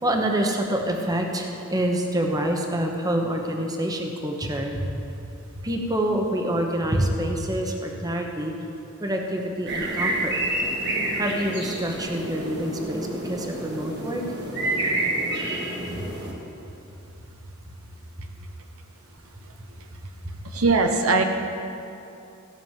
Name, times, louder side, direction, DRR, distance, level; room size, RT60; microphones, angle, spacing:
voice 1, 0.0-4.9 5.2-5.3 5.6-8.5 9.0-10.3 11.2-14.2 15.9-16.0, right 1 dB, 20° right, 2 dB, 1.0 m, -26 dB
sound 1, 9.7-16.3, right 1 dB, 55° right, 1.9 m, -28 dB
voice 2, 20.5-21.2, right 3 dB, 85° right, 4 dB, 1.0 m, -20 dB
15.5 x 6.1 x 7.5 m, 2.8 s
head